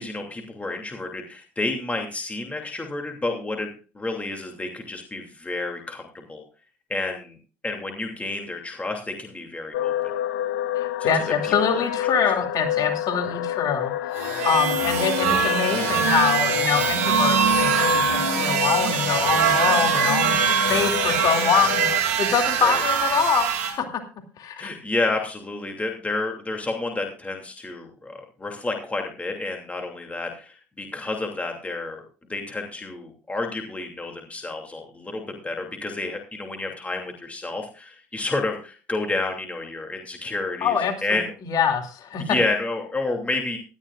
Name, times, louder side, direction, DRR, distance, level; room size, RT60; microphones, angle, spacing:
voice 1, 0.0-3.7 3.9-6.4 6.9-7.4 7.6-10.1 11.0-11.5 12.8-12.9 20.5-20.8 22.6-22.8 24.6-32.0 32.3-41.3 42.2-43.6, left 2 dB, 20° left, 2 dB, 2.7 m, -30 dB
sound 1, 9.7-22.0, left 13 dB, 90° left, 0.8 m, -29 dB
voice 2, 10.8-20.3 20.7-23.5 23.8-23.9 24.4-24.7 40.6-42.2, left 7 dB, 55° left, 4 dB, 2.6 m, -24 dB
sound 2, 14.1-23.7, right 7 dB, 90° right, 2.7 m, -23 dB
17.5 x 13.0 x 2.5 m, 0.37 s
supercardioid pair, 75°, 8 cm